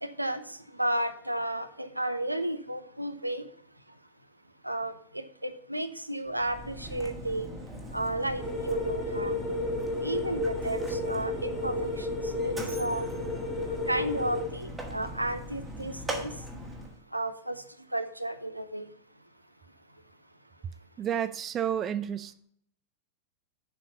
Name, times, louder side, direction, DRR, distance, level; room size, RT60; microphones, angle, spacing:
voice 1, 0.0-3.5 4.6-7.5 7.9-9.4 10.0-13.1 13.6-16.3 17.1-17.6 17.9-18.9, right 1 dB, 85° right, 10 dB, 0.6 m, -33 dB
Mechanisms, 6.3-17.0, equal, 10° right, 1.5 m, -41 dB
sound 1, 8.4-14.4, left 2 dB, 25° left, 2.6 m, -32 dB
voice 2, 21.0-22.3, right 9 dB, 25° right, 13 dB, 0.4 m, -30 dB
7.1 x 4.5 x 6.5 m, 0.64 s
figure-of-eight pair, 90°, 0 cm